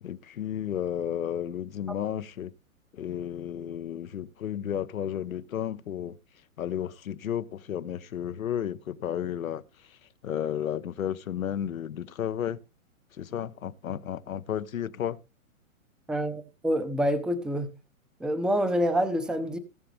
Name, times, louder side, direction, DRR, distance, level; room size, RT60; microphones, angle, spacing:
voice 1, 0.0-2.5 2.9-6.2 6.6-9.6 10.2-12.6 13.2-15.2, left 9 dB, 75° left, 1.0 m, -32 dB
voice 2, 16.1-17.7 18.2-19.6, equal, ahead, 0.9 m, -27 dB
18.5 x 6.8 x 3.3 m
hypercardioid pair, 120°, 42 cm